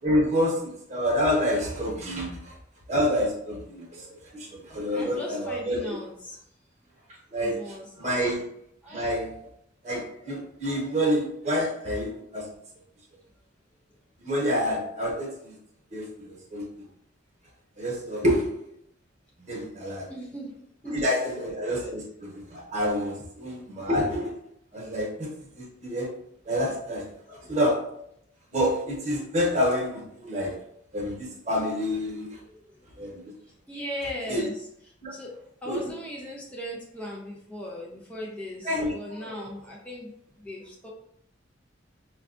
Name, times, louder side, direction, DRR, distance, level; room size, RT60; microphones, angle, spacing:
voice 1, 0.0-2.5 2.9-5.9 7.3-8.4 8.9-9.4 9.8-12.5 14.2-15.6 15.9-16.8 17.8-18.6 19.4-20.1 20.9-24.3 24.7-26.1 26.4-27.9 28.5-30.6 30.9-32.4 33.0-33.2 34.3-34.5 35.0-35.1 35.7-35.9 38.6-39.4, equal, 35° right, -1 dB, 1.1 m, -28 dB
voice 2, 4.7-6.4 7.4-8.2 8.8-9.0 20.1-21.0 21.4-21.5 27.4-27.5 32.4-33.3 33.7-34.7 35.1-35.4 35.6-40.1 40.4-40.9, equal, 5° left, -4 dB, 0.6 m, -38 dB
5.5 x 2.3 x 2.5 m, 0.71 s
head